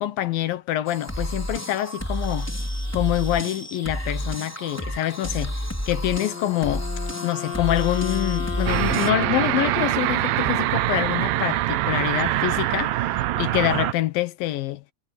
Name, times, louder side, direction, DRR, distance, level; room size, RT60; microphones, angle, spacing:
voice 1, 0.0-2.5 2.9-5.6 5.9-6.9 7.2-14.8, left 14 dB, 70° left, 2.6 m, -26 dB
sound 1, 0.9-9.1, equal, 5° left, 3.9 m, -30 dB
Wind instrument woodwind instrument, 6.1-10.3, left 8 dB, 40° left, 1.7 m, -34 dB
sound 2, 8.7-13.9, right 15 dB, 75° right, 2.3 m, -24 dB
omnidirectional pair, 4.5 m